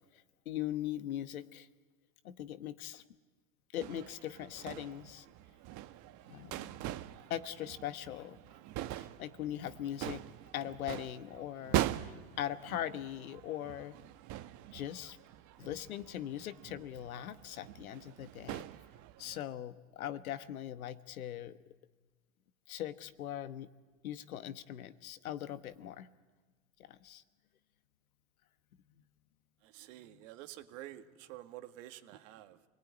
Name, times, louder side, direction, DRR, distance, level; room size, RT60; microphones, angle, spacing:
voice 1, 0.1-1.7 2.2-3.0 3.7-5.3 6.3-6.7 7.3-8.4 8.9-10.2 10.5-13.9 14.7-15.2 15.6-18.7 19.2-21.6 22.7-23.7 24.0-26.1 26.8-27.2, left 11 dB, 80° left, 12 dB, 1.4 m, -41 dB
sound 1, 3.8-19.4, right 14 dB, 45° right, 1.2 m, -42 dB
voice 2, 29.6-32.7, right 14 dB, 65° right, 8 dB, 2.1 m, -49 dB
27.5 x 19.5 x 9.7 m, 1.3 s
hypercardioid pair, 110°, 42 cm